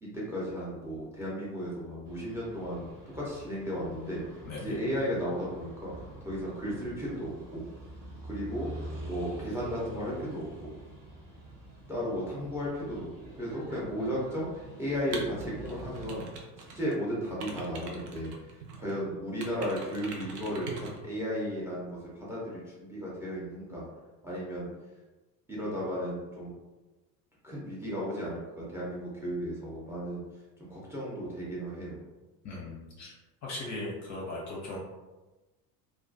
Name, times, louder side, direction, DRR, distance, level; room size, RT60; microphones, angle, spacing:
voice 1, 0.0-4.2 4.6-5.9 6.2-7.6 8.2-8.7 9.0-10.7 11.9-16.2 16.6-18.3 18.8-23.9 24.2-24.7 25.5-26.6 27.4-30.2 30.6-32.0, equal, 5° right, -6 dB, 0.7 m, -35 dB
sound 1, 2.1-16.1, right 1 dB, 35° right, 0.9 m, -46 dB
sound 2, 15.1-17.0 17.2-18.9 19.4-21.0, right 4 dB, 70° right, 0.6 m, -43 dB
voice 2, 32.4-33.1 33.4-34.8, left 2 dB, 35° left, -4 dB, 0.6 m, -38 dB
2.3 x 2.3 x 2.5 m, 1.2 s
figure-of-eight pair, 60°, 49 cm